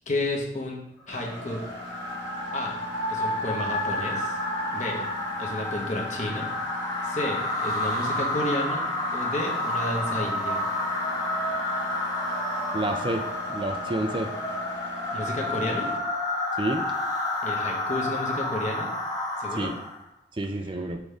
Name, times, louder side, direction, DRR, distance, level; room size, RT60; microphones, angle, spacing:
voice 1, 0.1-1.6 2.5-2.8 3.1-4.4 4.7-5.0 5.4-6.5 7.0-8.8 9.1-10.6 15.1-15.9 17.4-18.9 19.4-19.7 20.6-20.7, left 1 dB, 40° left, 0 dB, 1.2 m, -31 dB
sound 1, 1.1-20.0, left 1 dB, 20° left, 1.0 m, -30 dB
Engine, 1.1-16.0, right 1 dB, 75° right, 0.9 m, -44 dB
voice 2, 12.7-13.2 13.5-14.3 16.6-16.8 19.5-19.7 20.4-21.0, right 2 dB, 25° right, 5 dB, 0.4 m, -29 dB
6.3 x 4.9 x 3.4 m, 0.80 s
head